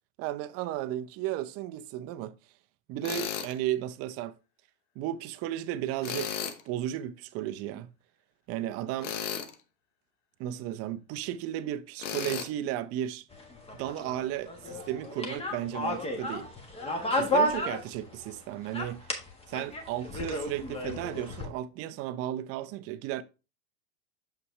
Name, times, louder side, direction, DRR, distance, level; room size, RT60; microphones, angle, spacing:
voice 1, 0.2-2.3 2.9-4.3 5.0-7.9 8.5-9.1 10.4-13.2 13.7-16.5 17.1-19.1 19.5-23.2, right 12 dB, 40° right, 0.7 m, -34 dB
Tools, 3.0-3.5 6.0-6.6 9.0-9.5 12.0-12.5, left 8 dB, 80° left, 1.1 m, -34 dB
sound 1, 13.3-18.4 18.6-21.5, left 1 dB, 15° left, 1.5 m, -32 dB
6.9 x 5.5 x 3.2 m
supercardioid pair, 120°, 36 cm